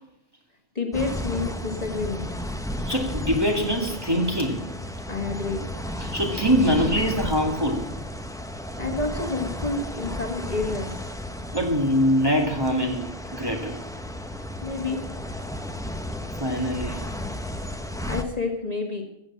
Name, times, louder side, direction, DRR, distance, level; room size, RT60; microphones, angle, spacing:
voice 1, 0.8-2.3 5.1-5.7 8.8-11.0 14.6-15.1 18.1-19.0, left 3 dB, 35° left, 2 dB, 1.9 m, -29 dB
sound 1, 0.9-18.2, left 1 dB, 5° left, 0.7 m, -33 dB
voice 2, 2.9-4.7 6.0-7.9 11.5-13.0 13.3-13.8 16.4-17.0, equal, 20° right, 0 dB, 2.2 m, -23 dB
15.5 x 8.0 x 7.3 m, 0.79 s
omnidirectional pair, 1.2 m